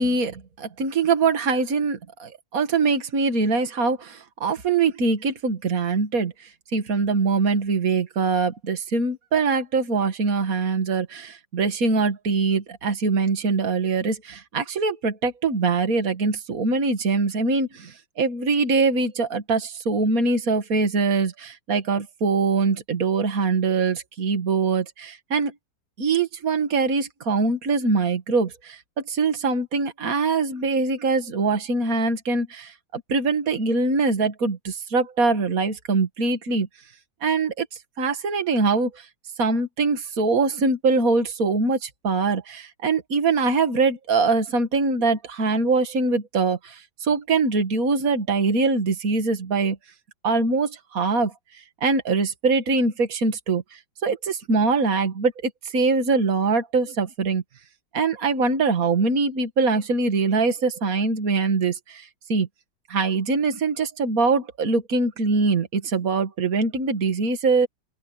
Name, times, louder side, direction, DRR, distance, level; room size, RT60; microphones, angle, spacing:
voice 1, 0.0-6.3 6.7-25.5 26.0-36.7 37.2-37.7 38.0-39.0 39.4-49.8 50.2-51.3 51.8-53.6 54.0-57.4 57.9-62.5 62.9-67.7, right 4 dB, 50° right, 2.4 m, -23 dB
open air
omnidirectional pair, 2.0 m